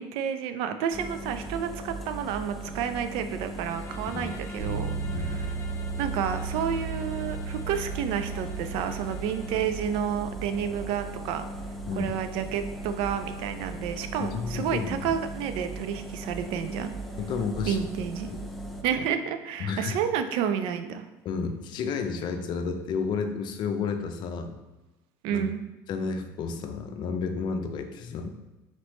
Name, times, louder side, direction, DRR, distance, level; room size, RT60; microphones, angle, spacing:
voice 1, 0.0-5.5 6.0-11.4 12.0-16.9 17.7-18.3 18.8-21.0 25.2-25.6, right 8 dB, 70° right, 9 dB, 0.4 m, -30 dB
sound 1, 0.9-18.8, right 1 dB, ahead, 0.4 m, -38 dB
Bowed string instrument, 3.5-9.7, left 4 dB, 30° left, 0.8 m, -49 dB
Bass guitar, 4.6-14.4, right 4 dB, 85° right, 0.9 m, -37 dB
voice 2, 5.1-5.4 10.5-10.6 11.9-12.1 14.2-15.1 17.2-17.9 18.3-18.4 19.6-20.0 21.2-24.6 25.3-25.5 25.9-28.3, left 5 dB, 50° left, 6 dB, 0.5 m, -31 dB
4.2 x 3.1 x 3.0 m, 1.1 s
supercardioid pair, 95°, 10 cm